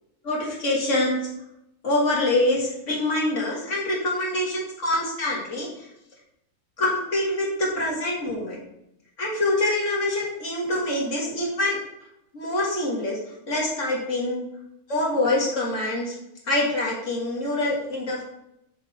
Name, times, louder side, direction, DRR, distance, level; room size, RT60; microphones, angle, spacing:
voice 1, 0.2-1.2 1.8-5.9 6.8-8.6 9.2-11.8 12.3-13.2 13.5-14.5 14.9-16.1 16.5-18.2, left 1 dB, 45° left, -4 dB, 2.0 m, -25 dB
7.9 x 3.8 x 4.3 m, 0.83 s
omnidirectional pair, 2.0 m